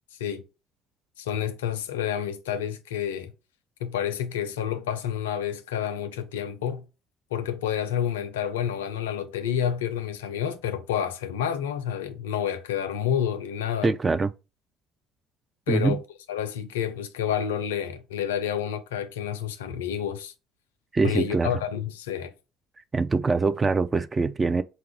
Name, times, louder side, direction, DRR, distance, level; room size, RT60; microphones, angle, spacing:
voice 1, 1.2-3.3 3.8-6.9 7.3-13.9 15.7-16.0 16.3-20.3 21.0-22.3, left 9 dB, 75° left, 0.4 m, -29 dB
voice 2, 13.8-14.3 15.7-16.0 20.9-21.5 22.9-24.6, right 4 dB, 25° right, 0.3 m, -23 dB
4.3 x 2.3 x 3.3 m
figure-of-eight pair, 55°, 0 cm